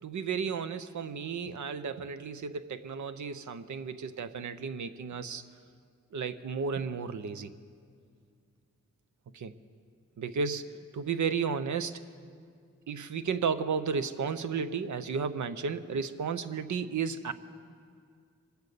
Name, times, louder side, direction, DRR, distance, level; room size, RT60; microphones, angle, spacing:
voice 1, 0.0-5.4 6.1-7.5 9.3-9.5 10.2-12.0 12.9-17.3, right 6 dB, 75° right, 11 dB, 0.7 m, -33 dB
24.0 x 8.1 x 6.8 m, 2.2 s
cardioid pair, 55°, 30 cm